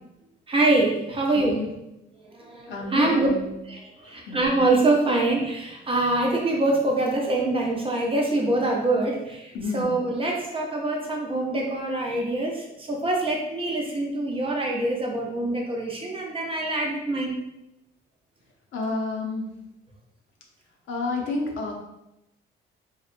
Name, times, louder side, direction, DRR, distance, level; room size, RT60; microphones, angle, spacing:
voice 1, 0.5-1.6 2.4-3.3 3.7-17.3, right 2 dB, 25° right, -1 dB, 0.6 m, -24 dB
voice 2, 1.3-1.7 2.7-3.7 4.0-4.4 9.5-10.0 18.7-19.5 20.9-21.7, left 3 dB, 75° left, 1 dB, 0.6 m, -30 dB
2.8 x 2.1 x 2.4 m, 0.87 s
cardioid pair, 90°, 20 cm